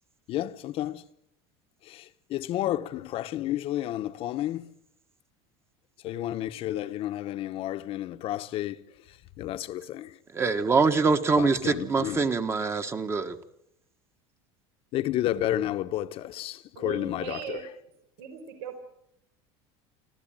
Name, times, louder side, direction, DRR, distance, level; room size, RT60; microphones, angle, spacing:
voice 1, 0.3-1.0 1.8-4.7 6.0-8.8 9.4-10.2 11.4-12.3 14.9-17.6, left 13 dB, 45° left, 1.1 m, -31 dB
voice 2, 10.3-13.4, right 4 dB, 20° right, 1.4 m, -24 dB
voice 3, 16.7-17.6 18.2-18.8, right 8 dB, 80° right, 4.7 m, -38 dB
26.0 x 15.0 x 9.0 m
cardioid pair, 150°, 13 cm